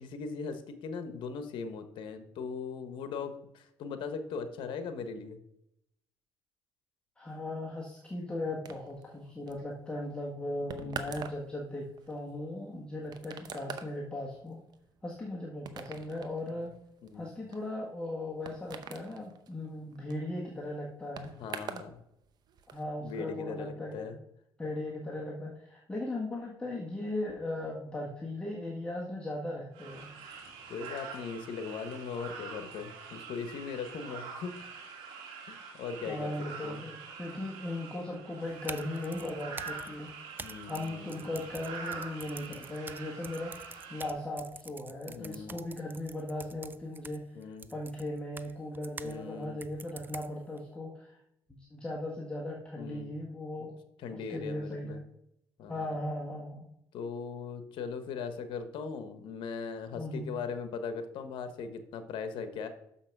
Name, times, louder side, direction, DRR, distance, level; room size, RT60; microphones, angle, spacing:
voice 1, 0.0-5.4 10.7-11.0 17.0-17.3 21.4-21.9 23.0-24.2 30.7-34.9 35.5-36.3 36.6-36.8 40.4-41.4 45.1-45.6 47.3-47.7 49.0-49.6 52.8-53.1 54.0-55.0 55.6-56.0 56.9-62.7, left 5 dB, 70° left, 9 dB, 1.1 m, -39 dB
voice 2, 7.2-14.6 15.0-16.7 17.1-21.3 22.7-24.1 24.6-30.1 36.1-40.1 40.7-47.2 47.7-51.2 51.5-53.7 54.1-55.0 55.7-56.7 59.9-60.3, left 1 dB, 10° left, -3 dB, 1.4 m, -38 dB
sound 1, 8.6-21.9 22.2-22.8, right 7 dB, 50° right, 0.8 m, -46 dB
sound 2, 29.7-44.1, right 5 dB, 85° right, 1.7 m, -45 dB
sound 3, 38.5-49.2 49.6-50.6, right 4 dB, 20° right, 0.4 m, -47 dB
6.5 x 5.7 x 5.9 m, 0.80 s
cardioid pair, 105°, 9 cm